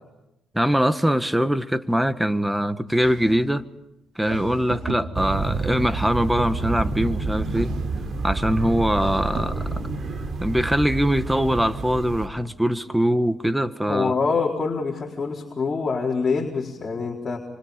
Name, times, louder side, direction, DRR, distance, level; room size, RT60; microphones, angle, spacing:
voice 1, 0.5-3.7 4.1-7.7 8.2-9.8 10.4-14.1, equal, 5° right, 10 dB, 1.6 m, -22 dB
sound 1, 2.9-3.5 4.2-5.6 7.4-8.1 8.9-9.7, right 4 dB, 75° right, 4.3 m, -36 dB
sound 2, 5.1-12.3, right 3 dB, 50° right, 4.2 m, -29 dB
voice 2, 13.9-17.4, left 4 dB, 35° left, -2 dB, 4.3 m, -25 dB
28.0 x 26.0 x 5.3 m, 0.84 s
cardioid pair, 90°, 0 cm